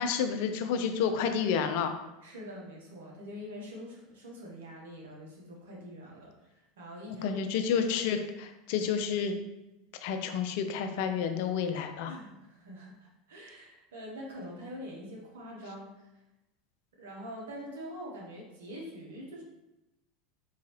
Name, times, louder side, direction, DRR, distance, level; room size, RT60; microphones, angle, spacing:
voice 1, 0.0-1.9 7.2-9.3 10.0-12.1, left 7 dB, 60° left, 7 dB, 0.4 m, -30 dB
voice 2, 2.2-7.9 12.1-16.1 17.0-19.4, equal, 75° right, -2 dB, 1.1 m, -45 dB
4.6 x 2.8 x 3.1 m, 0.95 s
hypercardioid pair, 85°, 0 cm